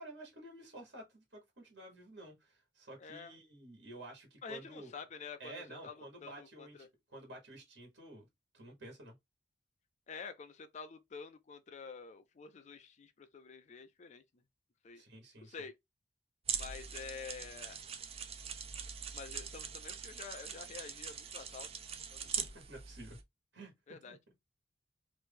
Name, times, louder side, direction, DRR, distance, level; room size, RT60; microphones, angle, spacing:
voice 1, 0.0-4.9 5.4-8.3 8.5-9.1 14.9-15.5 22.4-23.2 23.5-23.7 24.1-24.2, right 1 dB, 75° right, 1.5 m, -51 dB
voice 2, 3.0-3.3 4.4-6.9 10.1-14.2 14.8-15.0 15.4-15.8 16.5-17.8 19.1-21.7 22.1-22.3 23.9-24.2, left 5 dB, 40° left, 0.4 m, -48 dB
sound 1, 16.4-23.2, right 7 dB, 35° right, 0.5 m, -42 dB
3.0 x 2.7 x 3.5 m
head